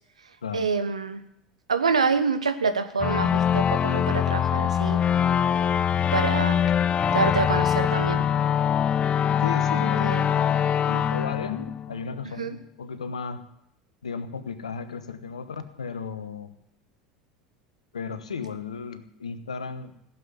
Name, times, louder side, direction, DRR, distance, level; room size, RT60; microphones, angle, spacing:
voice 1, 0.5-1.2 1.7-5.0 6.1-6.6 7.1-8.3 10.0-10.3 12.4-12.6, right 5 dB, 85° right, 9 dB, 1.1 m, -26 dB
sound 1, 3.0-12.3, left 8 dB, 30° left, 0.5 m, -23 dB
voice 2, 9.4-13.4 14.0-16.5 17.9-19.9, left 5 dB, 80° left, 11 dB, 1.2 m, -35 dB
16.0 x 7.5 x 9.7 m, 0.78 s
figure-of-eight pair, 75°, 3 cm